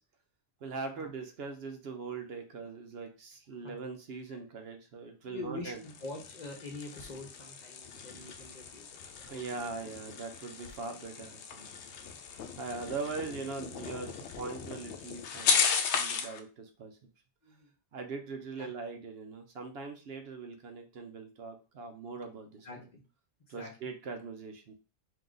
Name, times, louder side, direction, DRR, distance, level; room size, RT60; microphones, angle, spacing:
voice 1, 0.6-5.8 9.3-11.7 12.6-15.6 15.9-17.0 17.9-22.7 23.5-24.7, right 4 dB, 65° right, 5 dB, 0.9 m, -41 dB
voice 2, 5.2-9.7 17.4-17.7 18.6-18.7 22.6-23.0 23.5-23.7, left 2 dB, 40° left, 1 dB, 1.0 m, -45 dB
sound 1, 5.7-16.4, left 6 dB, 80° left, 0.9 m, -35 dB
3.6 x 2.8 x 3.8 m, 0.33 s
omnidirectional pair, 1.2 m